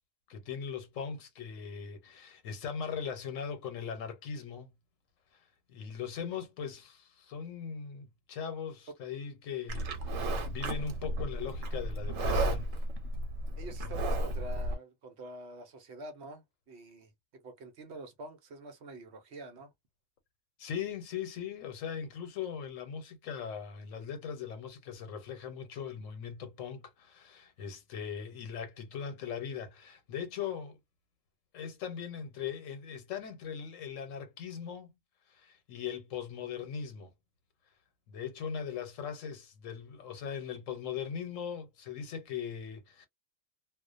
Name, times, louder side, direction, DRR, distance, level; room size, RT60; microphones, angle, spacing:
voice 1, 0.3-4.7 5.3-5.4 5.7-12.7 20.6-30.8 31.5-34.9 35.3-37.1 38.1-43.1, left 7 dB, 85° left, 1.1 m, -40 dB
Livestock farm animals working animals, 9.7-14.7, right 1 dB, 85° right, 1.1 m, -33 dB
voice 2, 13.6-19.7, right 2 dB, 60° right, 1.0 m, -46 dB
2.4 x 2.1 x 2.4 m
omnidirectional pair, 1.3 m